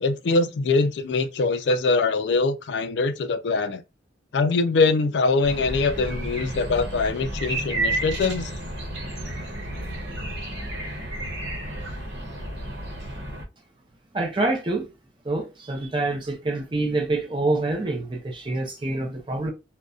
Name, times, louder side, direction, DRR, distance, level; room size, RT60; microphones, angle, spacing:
voice 1, 0.0-3.8 4.3-8.5, left 3 dB, 70° left, 0.4 m, -23 dB
sound 1, 5.4-13.4, right 1 dB, 75° right, 0.9 m, -31 dB
voice 2, 14.1-14.9 15.2-19.5, right 2 dB, 25° right, 0.5 m, -26 dB
2.5 x 2.1 x 2.3 m
head